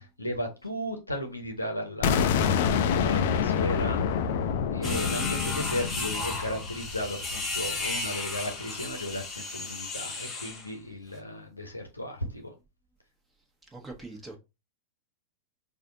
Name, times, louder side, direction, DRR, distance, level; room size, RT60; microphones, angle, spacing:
voice 1, 0.0-2.3 3.0-4.0 4.7-12.5, left 1 dB, 85° left, 0.9 m, -35 dB
sound 1, 2.0-7.8, left 7 dB, 50° left, 0.5 m, -27 dB
sound 2, 4.8-10.7, left 3 dB, 20° left, 1.2 m, -34 dB
voice 2, 4.8-5.4 13.7-14.4, right 3 dB, 15° right, 1.3 m, -42 dB
4.8 x 2.6 x 3.8 m
figure-of-eight pair, 90°, 0 cm